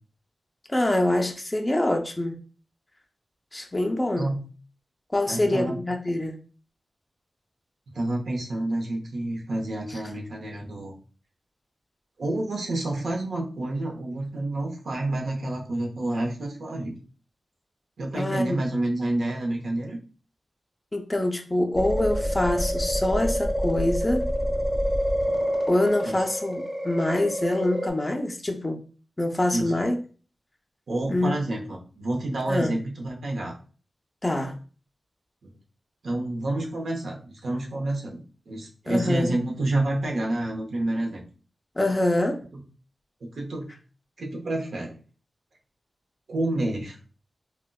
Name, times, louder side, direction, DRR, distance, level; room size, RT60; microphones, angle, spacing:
voice 1, 0.7-2.4 3.5-4.3 5.1-6.4 18.1-18.6 20.9-24.3 25.7-28.8 29.2-30.0 31.1-31.3 32.5-32.8 34.2-34.5 38.9-39.4 41.8-42.4, left 1 dB, 20° left, 0.5 m, -25 dB
voice 2, 5.3-5.7 7.9-10.9 12.2-17.0 18.0-20.0 26.0-26.2 29.5-29.7 30.9-33.6 35.4-35.5 36.0-41.2 43.2-43.7 44.2-44.9 46.3-47.0, right 1 dB, 80° right, 0.7 m, -29 dB
sound 1, 21.8-27.9, equal, 15° right, 0.9 m, -27 dB
3.8 x 2.1 x 2.2 m
wide cardioid pair, 80°, 0 cm